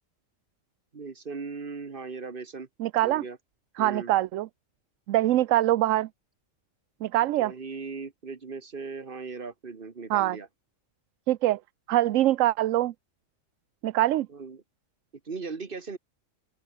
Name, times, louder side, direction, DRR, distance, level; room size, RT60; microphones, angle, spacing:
voice 1, 0.9-2.7 3.0-3.4 3.8-4.1 7.2-10.5 14.3-14.6 15.3-16.0, right 4 dB, 45° right, 1.7 m, -38 dB
voice 2, 2.8-3.2 3.8-4.5 5.1-6.1 7.0-7.5 10.1-10.4 11.3-11.6 11.9-12.9 13.8-14.3, right 14 dB, 80° right, 1.0 m, -23 dB
open air
omnidirectional pair, 1.3 m